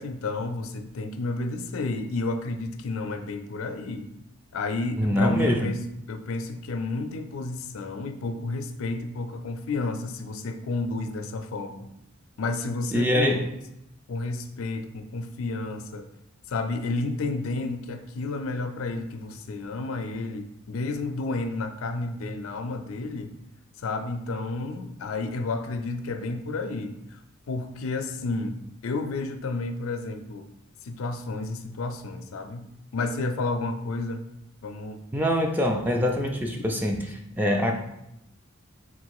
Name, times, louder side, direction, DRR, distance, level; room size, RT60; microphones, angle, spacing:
voice 1, 0.0-4.1 4.5-5.8 6.1-11.9 12.4-13.4 14.1-16.1 16.5-23.3 23.8-27.0 27.5-28.6 28.8-30.5 30.8-34.3 34.6-35.0 36.6-36.7, left 3 dB, 75° left, 8 dB, 0.4 m, -31 dB
voice 2, 5.0-5.7 12.9-13.4 35.1-37.7, equal, 10° right, 2 dB, 0.3 m, -24 dB
3.7 x 2.5 x 4.6 m, 0.82 s
head